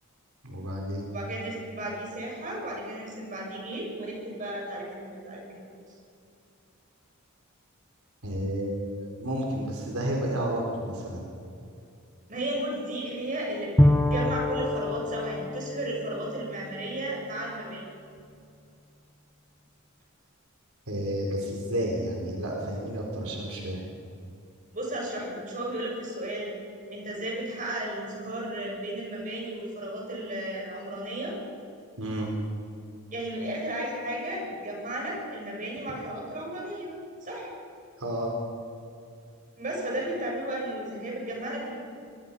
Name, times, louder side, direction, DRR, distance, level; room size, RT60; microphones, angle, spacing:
voice 1, 0.4-1.1 8.2-8.8 9.2-11.3 20.9-23.8 32.0-32.3 38.0-38.3, equal, 75° right, -1 dB, 4.5 m, -31 dB
voice 2, 1.1-5.6 12.3-17.9 24.7-26.5 26.9-31.4 33.1-36.9 37.2-37.5 39.6-41.8, right 1 dB, 35° right, -2 dB, 7.1 m, -34 dB
Bowed string instrument, 13.8-17.5, left 1 dB, 10° left, 1.2 m, -26 dB
25.0 x 23.0 x 5.7 m, 2.5 s
head